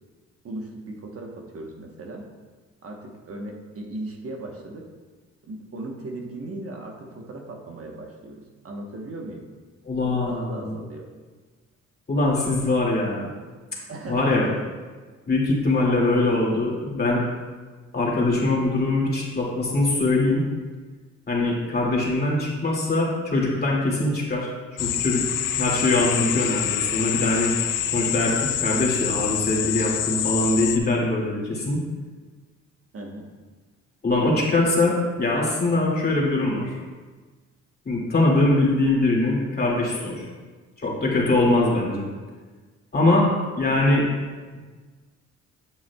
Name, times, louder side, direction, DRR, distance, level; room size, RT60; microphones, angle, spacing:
voice 1, 0.4-2.2 2.8-4.9 5.5-9.4 10.3-11.1 13.9-14.6 32.9-33.3 41.7-42.0, right 2 dB, 50° right, 1 dB, 1.2 m, -37 dB
voice 2, 9.9-10.7 12.1-13.3 14.1-14.5 15.3-17.3 17.9-20.5 21.3-24.5 24.8-25.3 25.5-27.5 27.9-31.8 34.0-36.8 37.9-40.2 40.8-42.0 42.9-43.3 43.6-44.0, left 2 dB, 30° left, -3 dB, 2.4 m, -22 dB
sound 1, 24.8-30.8, left 10 dB, 85° left, 0.6 m, -26 dB
9.1 x 7.1 x 2.3 m, 1.4 s
cardioid pair, 90°, 30 cm